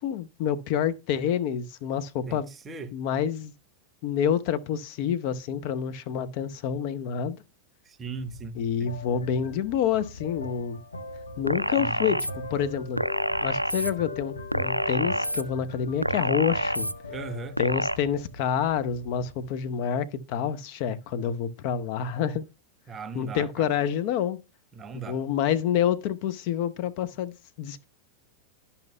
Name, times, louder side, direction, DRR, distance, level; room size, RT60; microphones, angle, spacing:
voice 1, 0.0-2.5 2.9-3.5 4.0-7.4 8.6-10.8 11.4-13.0 13.4-16.9 17.6-22.5 23.1-24.4 24.9-27.8, left 8 dB, 45° left, 0.7 m, -28 dB
voice 2, 7.9-8.9 11.8-12.2 17.1-17.6 22.9-23.7 24.7-25.2, right 4 dB, 20° right, 0.9 m, -38 dB
sound 1, 8.2-19.8, left 2 dB, 80° left, 1.1 m, -40 dB
sound 2, 11.5-12.3 13.0-13.9 14.5-15.4 16.0-16.9 17.6-18.0, right 1 dB, 90° right, 0.3 m, -27 dB
12.0 x 5.6 x 2.2 m
figure-of-eight pair, 90°, 0 cm